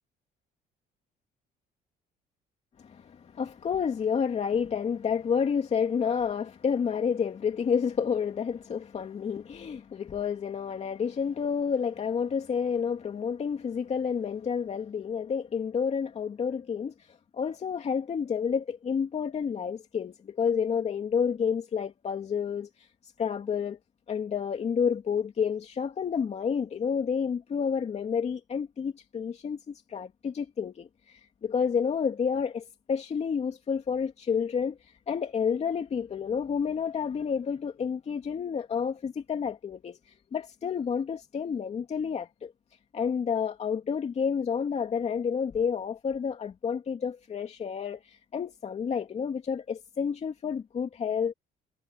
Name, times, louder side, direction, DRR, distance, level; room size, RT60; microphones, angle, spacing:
voice 1, 2.8-17.1 17.3-22.9 23.2-23.8 24.1-42.5 42.9-51.3, left 6 dB, 40° left, 2.6 m, -30 dB
cardioid pair, 110°, 17 cm